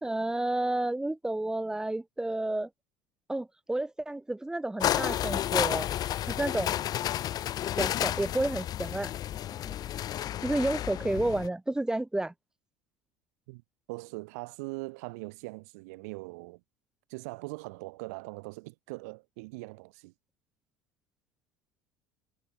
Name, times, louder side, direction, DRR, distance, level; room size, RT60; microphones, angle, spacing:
voice 1, 0.0-2.7 3.3-5.9 6.3-6.7 7.8-9.1 10.4-12.3, right 2 dB, 10° right, 2.2 m, -30 dB
sound 1, 4.8-11.5, left 12 dB, 50° left, 1.2 m, -31 dB
voice 2, 13.9-16.6 17.1-20.1, right 26 dB, 80° right, 2.8 m, -41 dB
supercardioid pair, 85°, 8 cm